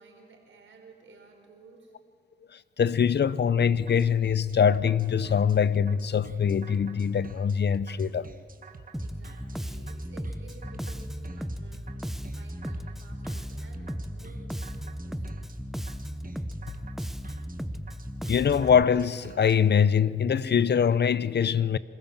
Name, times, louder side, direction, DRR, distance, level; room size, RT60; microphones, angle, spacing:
voice 1, 0.0-1.9 9.0-12.0 12.3-15.2, right 3 dB, 75° right, 4.8 m, -54 dB
voice 2, 2.5-8.3 18.3-21.8, left 7 dB, 55° left, 0.8 m, -23 dB
sound 1, 3.7-19.6, right 4 dB, 45° right, 1.7 m, -49 dB
Bass guitar, 8.9-18.8, equal, ahead, 1.0 m, -36 dB
26.5 x 15.0 x 7.5 m
cardioid pair, 50°, 20 cm